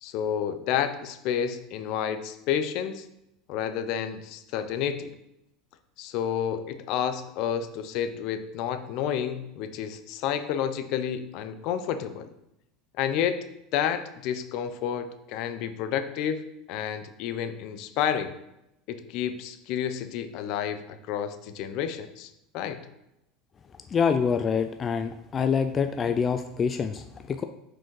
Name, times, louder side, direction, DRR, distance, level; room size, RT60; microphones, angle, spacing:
voice 1, 0.0-3.1 3.5-5.1 6.0-12.3 13.0-13.4 13.7-16.4 16.7-18.3 18.9-22.8, left 9 dB, 60° left, 10 dB, 0.7 m, -30 dB
voice 2, 23.9-27.4, left 6 dB, 30° left, 8 dB, 0.4 m, -26 dB
5.8 x 5.1 x 4.8 m, 0.86 s
supercardioid pair, 110°, 0 cm